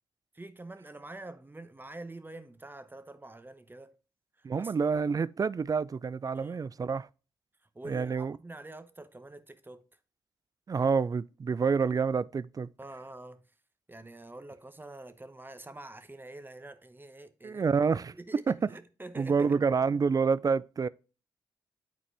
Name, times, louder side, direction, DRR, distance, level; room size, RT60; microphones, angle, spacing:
voice 1, 0.3-3.9 4.4-4.7 6.3-6.7 7.7-9.8 12.8-13.4 13.9-19.6, right 2 dB, 20° right, 0.9 m, -46 dB
voice 2, 4.4-7.1 7.8-8.4 10.7-12.7 17.4-18.1 18.5-18.6 19.2-20.9, right 5 dB, 35° right, 0.4 m, -28 dB
8.9 x 4.3 x 3.3 m
supercardioid pair, 45°, 10 cm